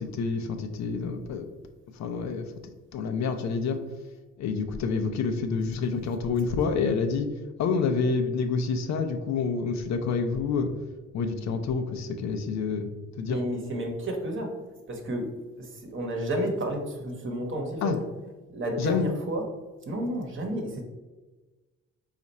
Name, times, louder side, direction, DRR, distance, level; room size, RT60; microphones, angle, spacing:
voice 1, 0.0-1.5 1.9-2.5 2.9-3.8 4.4-7.3 7.6-10.7 11.1-12.9 13.1-13.4 17.8-18.0 18.8-19.1, left 5 dB, 65° left, 6 dB, 0.6 m, -28 dB
voice 2, 13.3-14.6 14.9-15.3 15.6-18.0 18.5-19.4 19.8-20.8, right 1 dB, 40° right, 2 dB, 1.0 m, -31 dB
4.2 x 2.5 x 4.1 m, 1.2 s
cardioid pair, 90°, 30 cm